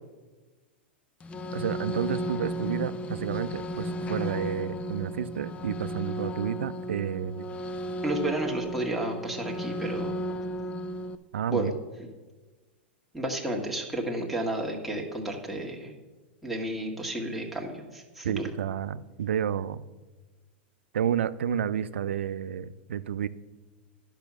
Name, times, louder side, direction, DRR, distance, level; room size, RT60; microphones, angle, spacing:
sound 1, 1.2-11.2, equal, 20° left, 0.5 m, -34 dB
voice 1, 1.5-7.5 11.3-11.7 18.2-19.8 20.9-23.3, right 9 dB, 90° right, 15 dB, 0.5 m, -30 dB
voice 2, 8.0-10.2 11.5-11.7 13.1-15.9 16.4-18.5, right 1 dB, ahead, -1 dB, 1.6 m, -32 dB
10.5 x 5.5 x 6.1 m, 1.2 s
hypercardioid pair, 125°, 6 cm